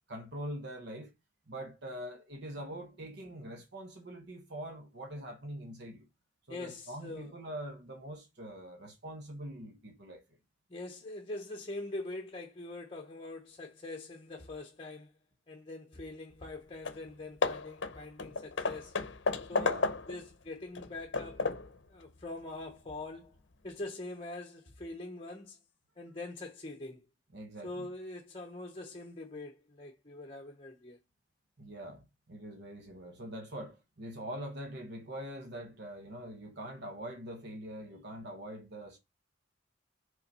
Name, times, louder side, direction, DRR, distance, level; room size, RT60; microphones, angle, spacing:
voice 1, 0.1-1.1 1.5-6.1 6.5-10.2 19.5-19.9 27.3-27.9 31.6-39.0, right 1 dB, 55° right, 1.0 m, -43 dB
voice 2, 6.5-7.3 10.7-15.1 15.5-19.0 19.5-19.8 20.1-21.5 21.9-23.3 23.6-25.6 26.0-27.1 27.6-31.0, left 2 dB, 30° left, 0.9 m, -43 dB
Hammer / Wood, 16.5-16.6 16.8-17.1 17.4-20.3 20.7-21.8, left 3 dB, 65° left, 0.7 m, -33 dB
5.5 x 3.9 x 5.4 m
head